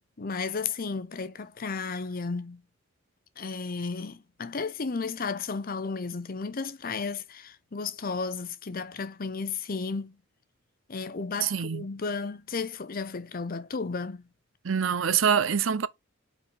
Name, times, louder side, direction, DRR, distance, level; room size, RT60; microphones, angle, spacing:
voice 1, 0.0-2.6 3.4-10.2 10.9-14.2, left 4 dB, 45° left, 0.7 m, -33 dB
voice 2, 11.4-11.8 14.6-15.9, right 7 dB, 75° right, 0.6 m, -25 dB
5.2 x 4.3 x 4.6 m
head